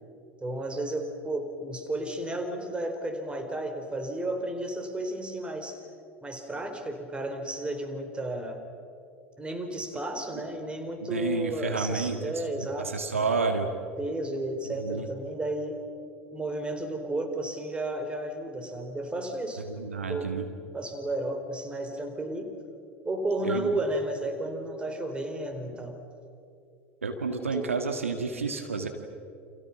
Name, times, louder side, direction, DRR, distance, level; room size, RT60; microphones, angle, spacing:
voice 1, 0.4-5.8 6.2-8.6 9.4-13.3 14.0-15.8 16.3-19.6 20.0-20.4 20.7-22.6 23.0-26.0 27.5-27.7, right 1 dB, 15° right, 6 dB, 4.3 m, -33 dB
voice 2, 11.0-12.4 12.8-13.7 14.8-15.1 19.7-20.5 23.4-23.7 27.0-28.9, right 4 dB, 80° right, 6 dB, 1.8 m, -30 dB
29.5 x 28.0 x 6.1 m, 2.5 s
figure-of-eight pair, 75°, 7 cm